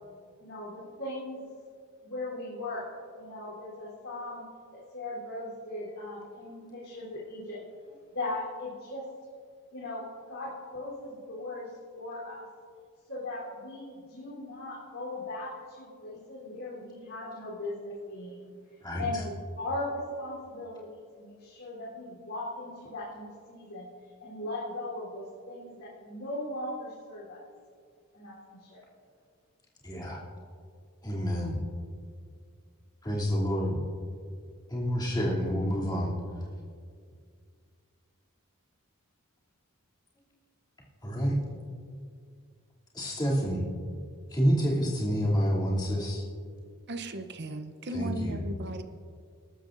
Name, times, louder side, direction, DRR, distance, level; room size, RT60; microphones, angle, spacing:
voice 1, 0.4-1.4 2.0-4.4 4.7-7.6 8.1-9.1 9.7-11.7 12.0-12.4 13.1-23.9 24.2-27.4 28.1-28.8, left 2 dB, 65° left, -9 dB, 3.6 m, -38 dB
voice 2, 29.8-30.2 31.0-31.6 33.0-33.8 34.7-36.1 41.0-41.4 42.9-43.6 44.3-46.2 47.9-48.4, equal, 20° left, -6 dB, 2.8 m, -28 dB
voice 3, 46.9-48.8, right 1 dB, 50° right, 8 dB, 0.8 m, -36 dB
22.0 x 13.0 x 2.6 m, 2.2 s
head